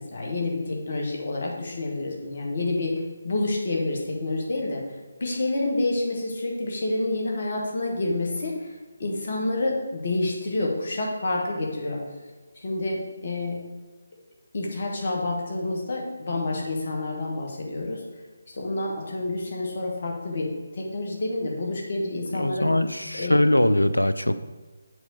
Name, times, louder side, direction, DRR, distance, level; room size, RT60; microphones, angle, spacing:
voice 1, 0.0-12.0 12.6-13.6 14.5-18.0 18.5-22.7 23.1-23.4, left 2 dB, 45° left, -1 dB, 1.9 m, -28 dB
voice 2, 22.3-24.3, left 1 dB, 85° left, 12 dB, 0.5 m, -21 dB
8.1 x 4.2 x 6.6 m, 1.3 s
figure-of-eight pair, 150°, 0 cm